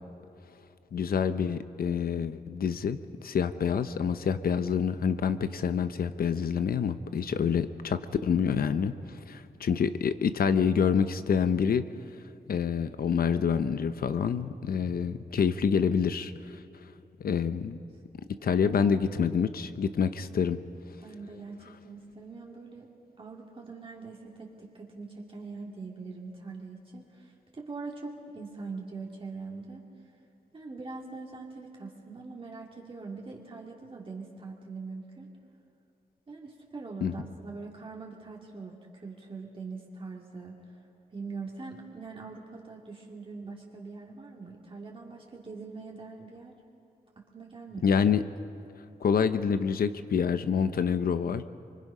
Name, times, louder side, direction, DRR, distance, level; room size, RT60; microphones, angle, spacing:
voice 1, 0.9-8.9 9.3-11.8 12.5-16.6 17.2-17.8 18.4-20.6 37.0-37.1 47.8-48.2 49.0-51.4, left 7 dB, 70° left, 11 dB, 0.9 m, -27 dB
voice 2, 18.4-19.3 21.0-22.9 23.2-29.9 30.5-35.3 36.3-40.6 41.1-46.6 47.2-48.0, right 4 dB, 35° right, -2 dB, 2.4 m, -42 dB
25.0 x 24.0 x 5.6 m, 2.6 s
wide cardioid pair, 95°, 16 cm